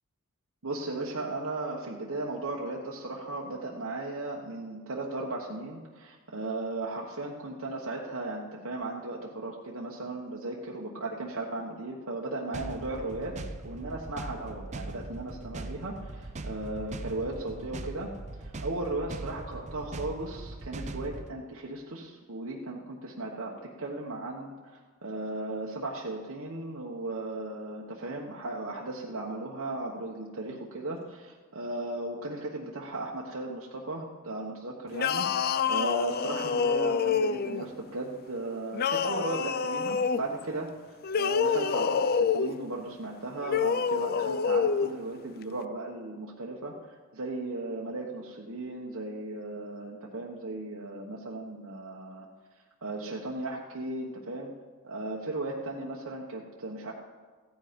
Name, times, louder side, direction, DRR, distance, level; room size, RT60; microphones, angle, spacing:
voice 1, 0.6-13.4 13.6-18.1 18.4-35.3 35.7-40.7 41.1-46.7 47.1-52.3 52.8-54.5 54.8-56.9, right 2 dB, 65° right, -3 dB, 1.2 m, -36 dB
sound 1, 12.5-21.3, right 2 dB, 30° right, 0.6 m, -40 dB
sound 2, 34.9-37.7 38.7-40.2 41.0-42.6 43.4-44.9, left 6 dB, 45° left, 0.4 m, -27 dB
15.0 x 10.5 x 5.2 m, 1.4 s
head